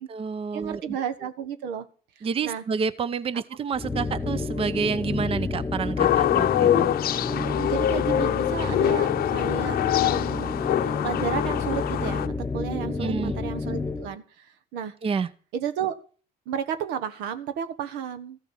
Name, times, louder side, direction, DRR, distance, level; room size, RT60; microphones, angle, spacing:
voice 1, 0.0-1.0 2.2-6.9 12.8-13.3 15.0-15.3, right 5 dB, 35° right, 16 dB, 0.7 m, -29 dB
voice 2, 0.5-1.9 2.4-2.6 7.3-14.9 15.5-15.9 16.5-18.4, right 8 dB, 90° right, 10 dB, 1.3 m, -32 dB
sound 1, 3.7-14.1, left 3 dB, 10° left, 1.2 m, -30 dB
sound 2, 6.0-12.3, left 12 dB, 65° left, 0.7 m, -24 dB
14.5 x 6.7 x 7.4 m, 0.40 s
cardioid pair, 110°, 17 cm